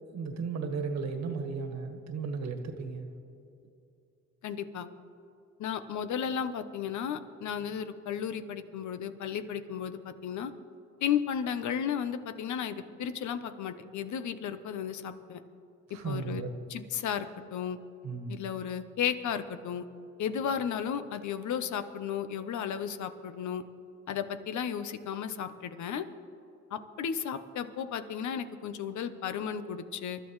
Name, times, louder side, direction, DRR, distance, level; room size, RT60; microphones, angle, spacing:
voice 1, 0.1-3.1 15.9-16.5 18.0-18.4, right 5 dB, 65° right, 5 dB, 1.8 m, -35 dB
voice 2, 4.4-4.9 5.6-10.5 11.0-15.4 15.9-16.4 16.7-17.8 18.3-19.8 20.2-23.6 24.1-26.0 26.7-30.2, left 8 dB, 70° left, 10 dB, 1.0 m, -34 dB
27.5 x 12.5 x 3.2 m, 2.6 s
cardioid pair, 90°, 30 cm